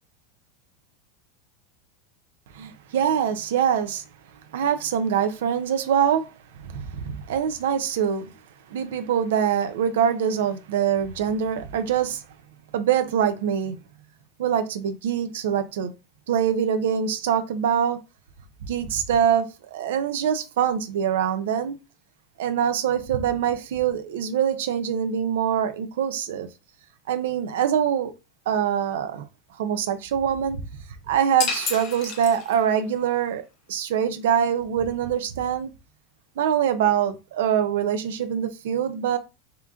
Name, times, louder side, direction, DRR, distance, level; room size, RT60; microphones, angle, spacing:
voice 1, 2.5-4.0 4.5-6.3 6.6-8.3 8.7-12.2 12.7-13.8 14.4-15.9 16.3-18.0 18.6-21.8 22.4-26.5 27.1-28.1 28.5-29.2 29.6-30.7 31.1-35.7 36.4-39.2, right 8 dB, 80° right, 0.7 m, -24 dB
sound 1, 31.4-32.9, left 5 dB, 35° left, 0.8 m, -30 dB
3.8 x 2.9 x 3.6 m
supercardioid pair, 165°, 0 cm